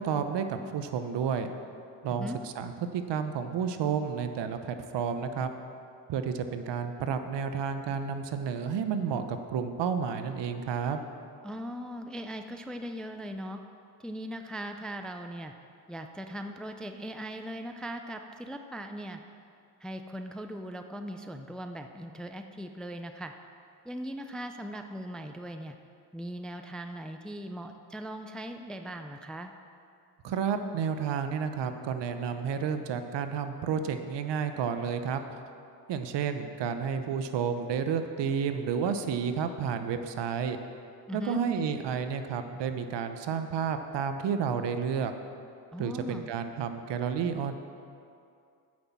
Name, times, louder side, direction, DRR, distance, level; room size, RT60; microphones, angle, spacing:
voice 1, 0.0-1.5 2.0-5.5 6.1-11.0 30.2-35.2 35.9-40.6 41.1-45.1 45.8-47.5, right 7 dB, 60° right, 8 dB, 0.9 m, -31 dB
voice 2, 11.4-13.6 14.0-15.5 15.9-19.2 19.8-23.3 23.8-25.8 26.1-29.5 41.1-41.4 45.7-46.3, equal, ahead, 6 dB, 0.5 m, -39 dB
9.6 x 6.2 x 7.2 m, 2.5 s
cardioid pair, 85°, 47 cm